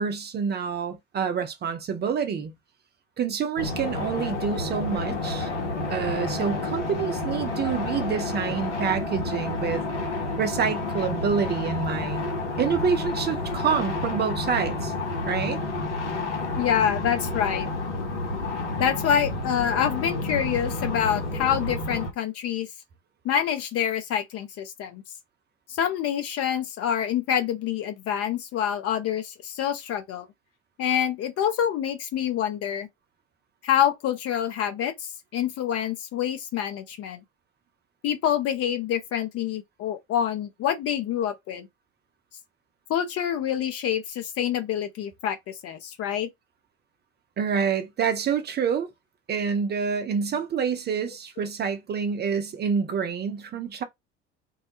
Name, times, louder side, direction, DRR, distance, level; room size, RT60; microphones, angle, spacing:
voice 1, 0.0-2.5 3.2-5.5 5.9-9.8 10.4-12.3 12.6-14.9 15.2-15.6 47.4-48.9 49.3-53.8, right 6 dB, 30° right, 0.6 m, -27 dB
sound 1, 3.6-22.1, left 2 dB, 80° left, 0.9 m, -30 dB
voice 2, 16.6-17.7 18.8-22.7 23.2-25.0 25.7-30.3 30.8-32.9 33.6-37.2 38.0-41.7 42.9-46.3, left 9 dB, 45° left, 0.7 m, -26 dB
2.3 x 2.1 x 2.8 m
figure-of-eight pair, 60°, 35 cm